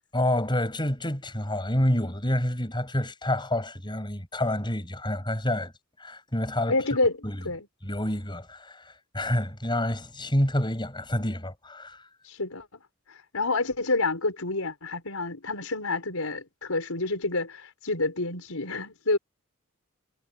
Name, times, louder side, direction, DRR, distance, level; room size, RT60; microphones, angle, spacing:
voice 1, 0.1-5.7 6.0-6.8 7.2-7.4 7.8-12.0, left 1 dB, 20° left, 6.6 m, -28 dB
voice 2, 6.7-7.2 7.4-7.7 12.2-12.7 13.3-19.2, left 2 dB, 75° left, 5.2 m, -28 dB
head